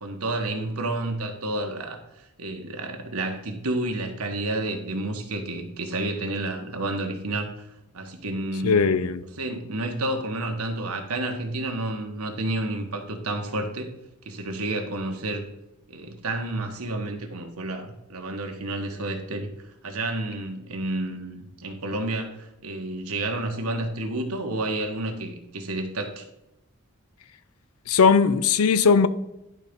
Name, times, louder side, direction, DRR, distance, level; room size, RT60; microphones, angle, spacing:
voice 1, 0.0-7.7 7.9-8.8 9.4-13.9 14.2-15.4 15.9-19.5 19.8-26.2, right 2 dB, 85° right, 1.4 m, -30 dB
voice 2, 8.6-9.2 27.9-29.1, left 5 dB, 80° left, 0.6 m, -19 dB
11.0 x 4.1 x 5.2 m
head